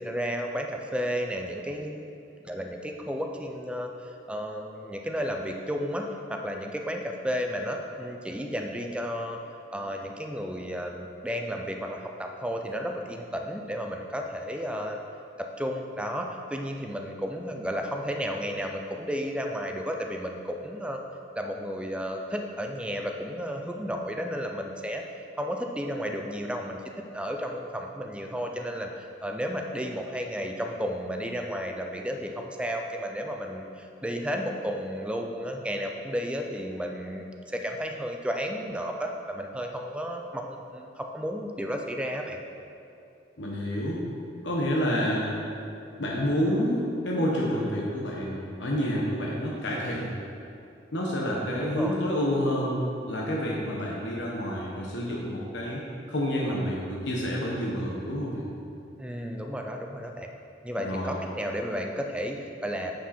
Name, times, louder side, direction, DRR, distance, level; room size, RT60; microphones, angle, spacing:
voice 1, 0.0-2.0 2.4-9.4 9.7-15.0 15.6-21.0 21.4-25.0 25.4-26.8 27.1-42.4 51.6-52.0 59.0-60.3 60.6-62.9, equal, 5° right, 2 dB, 0.4 m, -33 dB
voice 2, 43.4-44.0 44.4-45.4 46.0-50.1 50.9-55.8 56.1-58.4 60.8-61.2, equal, 75° left, -4 dB, 1.0 m, -28 dB
9.1 x 5.0 x 4.2 m, 2.6 s
head